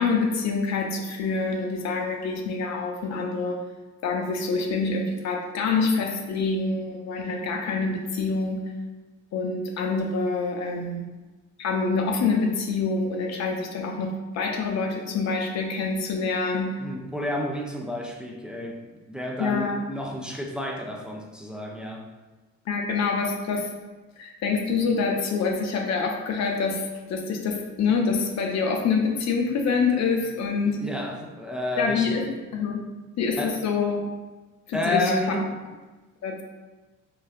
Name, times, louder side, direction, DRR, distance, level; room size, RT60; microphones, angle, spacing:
voice 1, 0.0-3.6 4.0-8.6 9.3-11.1 11.6-16.7 19.4-19.8 22.7-23.7 24.2-26.8 27.1-30.8 31.8-32.8 33.2-34.0 34.7-35.4 36.2-36.4, left 4 dB, 45° left, 2 dB, 0.6 m, -26 dB
voice 2, 16.8-22.1 30.8-32.2 33.4-33.6 34.7-35.6, left 1 dB, ahead, 0 dB, 0.3 m, -30 dB
3.1 x 2.3 x 2.4 m, 1.2 s
hypercardioid pair, 50°, 39 cm